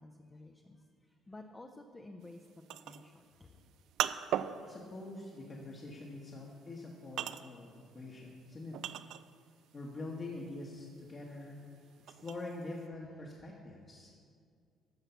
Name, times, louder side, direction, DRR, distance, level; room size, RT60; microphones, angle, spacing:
voice 1, 0.0-3.6 4.3-4.6 7.8-7.9 11.8-12.2 14.1-14.2, left 2 dB, 15° left, 4 dB, 0.6 m, -54 dB
sound 1, 2.3-9.6 9.9-12.8, right 10 dB, 70° right, 0.4 m, -39 dB
voice 2, 4.6-8.8 9.7-11.6 12.0-14.1, left 2 dB, 35° left, -3 dB, 1.4 m, -45 dB
13.5 x 5.7 x 7.0 m, 2.2 s
cardioid pair, 125°, 0 cm